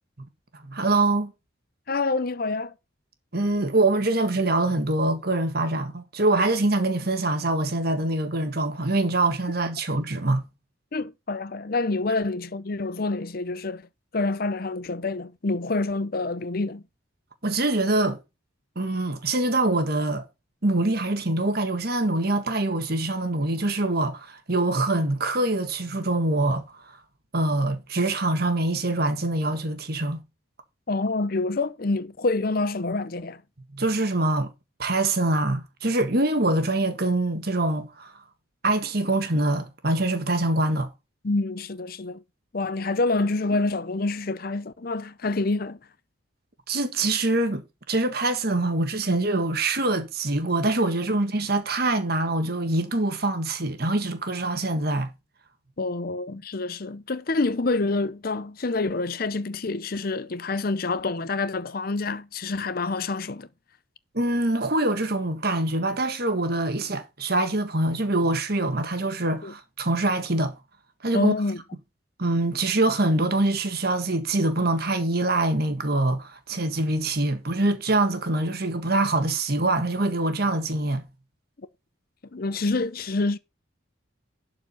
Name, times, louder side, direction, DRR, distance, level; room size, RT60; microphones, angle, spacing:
voice 1, 0.6-1.3 3.3-10.4 17.4-18.2 18.7-20.2 20.6-27.0 27.3-30.2 33.7-34.5 34.8-38.1 38.6-40.9 46.7-47.6 47.9-55.1 64.1-70.5 71.0-71.3 72.2-81.0, right 2 dB, 50° right, 1.7 m, -24 dB
voice 2, 1.9-2.7 10.9-13.9 14.1-16.8 30.9-33.4 41.2-42.2 42.5-45.8 55.8-63.5 69.4-69.5 71.1-71.6 82.3-83.4, left 3 dB, 45° left, 0.6 m, -27 dB
11.5 x 4.8 x 5.6 m
head